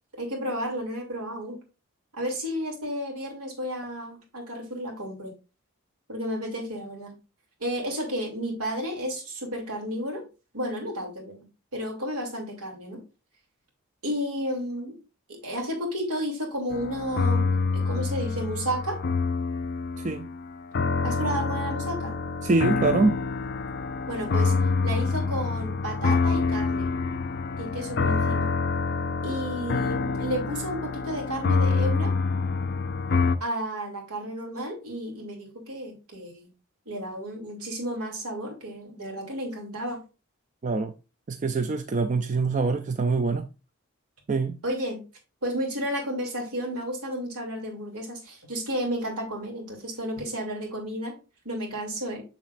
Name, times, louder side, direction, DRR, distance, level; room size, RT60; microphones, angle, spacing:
voice 1, 0.1-1.6 2.2-5.3 6.1-7.1 7.6-10.2 10.5-11.4 11.7-13.0 14.0-15.0 15.3-17.5 17.7-19.0 21.0-22.2 24.1-24.5 24.8-26.9 27.6-28.6 29.2-32.1 33.4-36.5 36.9-40.0 44.6-45.0 45.4-51.1 51.4-52.2, equal, 90° right, 2.8 m, -32 dB
sound 1, 16.7-33.4, left 4 dB, 45° left, 0.4 m, -26 dB
voice 2, 22.4-23.2 40.6-40.9 41.3-43.5 44.3-44.6, right 3 dB, 35° right, 0.3 m, -24 dB
7.2 x 6.5 x 2.5 m
head